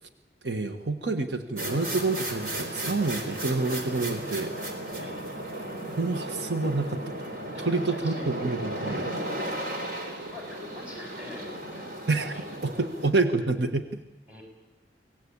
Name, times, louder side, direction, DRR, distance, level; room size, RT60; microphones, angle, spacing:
voice 1, 0.4-4.5 6.0-7.1 7.6-9.1 12.1-12.3 12.6-13.9, right 3 dB, 75° right, 8 dB, 1.4 m, -28 dB
sound 1, 1.6-13.1, right 1 dB, 50° right, 4.1 m, -35 dB
voice 2, 7.5-8.3 8.8-9.1 10.3-11.8 12.3-12.4 14.3-14.4, left 1 dB, 10° right, 1 dB, 7.1 m, -43 dB
24.5 x 18.0 x 8.7 m, 1.1 s
head